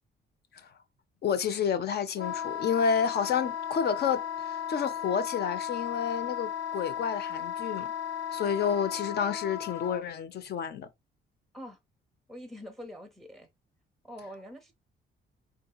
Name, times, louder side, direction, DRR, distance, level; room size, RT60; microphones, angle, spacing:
voice 1, 1.2-7.9 8.3-10.9, left 7 dB, 55° left, 0.5 m, -30 dB
Wind instrument woodwind instrument, 2.1-10.0, left 9 dB, 75° left, 1.1 m, -35 dB
voice 2, 12.3-13.5 14.0-14.7, equal, ahead, 0.7 m, -44 dB
3.7 x 2.7 x 2.2 m
cardioid pair, 90°, 20 cm